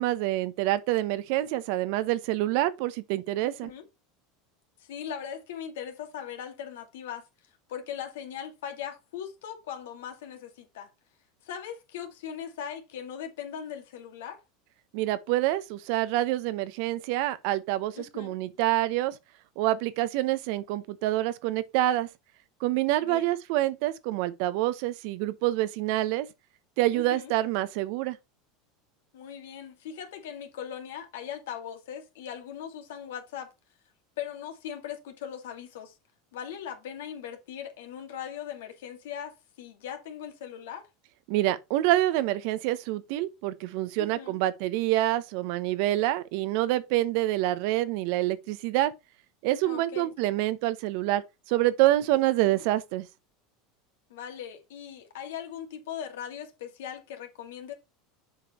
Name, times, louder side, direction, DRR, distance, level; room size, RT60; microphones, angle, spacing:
voice 1, 0.0-3.7 14.9-19.2 19.6-22.1 22.6-26.3 26.8-28.2 41.3-48.9 49.4-53.1, right 15 dB, 65° right, 0.9 m, -27 dB
voice 2, 3.4-3.9 4.8-7.2 7.7-10.9 11.4-14.4 17.9-18.4 23.0-23.3 26.9-27.3 29.1-33.5 34.2-35.9 36.3-40.9 44.0-44.4 49.6-50.1 52.4-52.6 54.1-57.7, left 9 dB, 80° left, 2.2 m, -39 dB
7.5 x 5.1 x 4.3 m
supercardioid pair, 110°, 0 cm